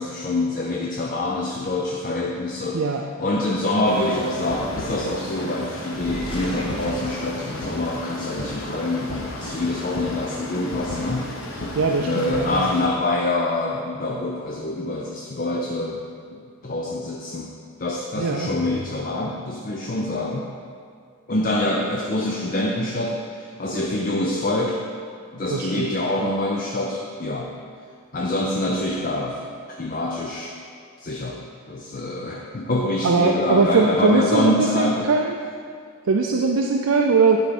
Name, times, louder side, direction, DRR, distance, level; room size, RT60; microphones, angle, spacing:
voice 1, 0.0-2.8 3.2-11.3 12.0-16.0 16.3-17.5 17.8-20.5 21.3-24.8 25.3-27.5 28.1-29.4 29.8-30.5 31.0-31.4 31.7-35.1, left 2 dB, 40° left, -1 dB, 0.5 m, -25 dB
voice 2, 2.7-3.1 11.8-12.7 18.2-18.6 25.5-25.9 33.0-35.4 36.1-37.4, right 4 dB, 90° right, 1 dB, 0.5 m, -20 dB
sound 1, 3.9-12.9, left 1 dB, 70° left, 1.0 m, -33 dB
sound 2, 5.9-8.4 8.9-10.1, equal, 25° left, 0.9 m, -38 dB
10.5 x 4.7 x 4.2 m, 2.2 s
head